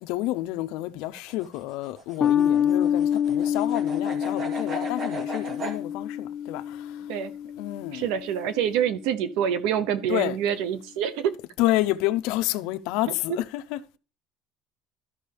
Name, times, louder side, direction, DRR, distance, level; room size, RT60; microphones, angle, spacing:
voice 1, 0.0-7.1 7.6-8.1 10.1-10.4 11.6-13.8, left 16 dB, 75° left, 0.6 m, -29 dB
sound 1, 1.0-5.8, right 2 dB, 35° right, 2.3 m, -37 dB
sound 2, 2.2-8.9, left 9 dB, 30° left, 0.4 m, -27 dB
voice 2, 7.9-11.4, right 9 dB, 75° right, 0.8 m, -26 dB
13.5 x 5.4 x 3.4 m
cardioid pair, 145°, 0 cm